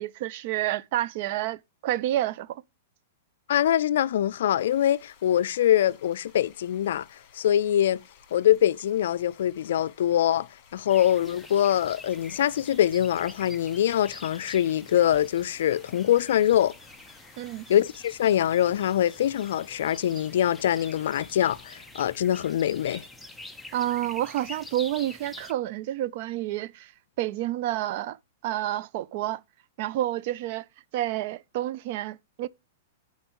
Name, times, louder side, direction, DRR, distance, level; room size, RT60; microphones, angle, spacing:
voice 1, 0.0-2.6 17.4-17.7 23.7-26.9 27.2-28.2 28.4-29.4 29.8-30.7 30.9-32.5, right 14 dB, 45° right, 0.4 m, -29 dB
voice 2, 3.5-7.0 7.3-8.0 8.3-16.7 17.7-23.0, left 11 dB, 70° left, 0.4 m, -24 dB
sound 1, 4.6-21.7, left 8 dB, 35° left, 1.9 m, -57 dB
sound 2, 10.9-25.5, left 1 dB, ahead, 0.6 m, -46 dB
12.5 x 4.4 x 2.9 m
hypercardioid pair, 150°, 0 cm